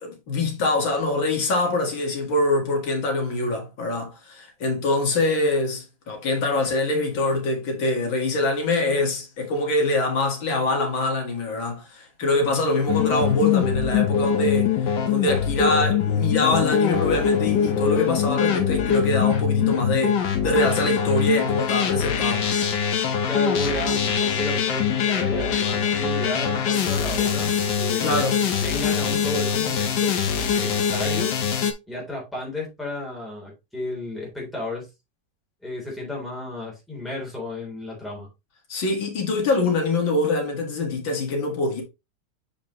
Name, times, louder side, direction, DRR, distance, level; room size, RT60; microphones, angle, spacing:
voice 1, 0.0-22.5 28.0-28.4 38.7-41.8, left 2 dB, 90° left, 2.6 m, -24 dB
sound 1, 12.9-31.7, left 7 dB, 65° left, 1.5 m, -23 dB
voice 2, 23.3-28.2 28.6-31.4 31.9-34.9 35.6-38.3, left 2 dB, ahead, 3.2 m, -32 dB
6.9 x 5.1 x 3.1 m
omnidirectional pair, 2.1 m